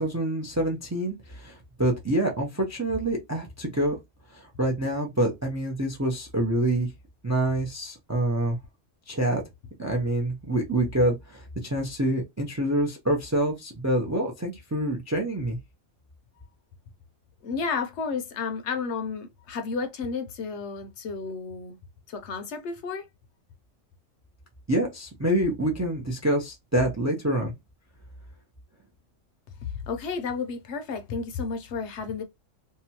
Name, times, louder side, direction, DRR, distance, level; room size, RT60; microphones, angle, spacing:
voice 1, 0.0-4.0 4.3-6.9 7.2-8.6 9.1-9.4 9.8-15.6 24.7-27.5, right 1 dB, 25° right, 0.3 m, -26 dB
voice 2, 17.4-21.8 22.1-23.0 29.6-32.2, left 5 dB, 70° left, 0.8 m, -32 dB
2.8 x 2.2 x 2.7 m
omnidirectional pair, 1.3 m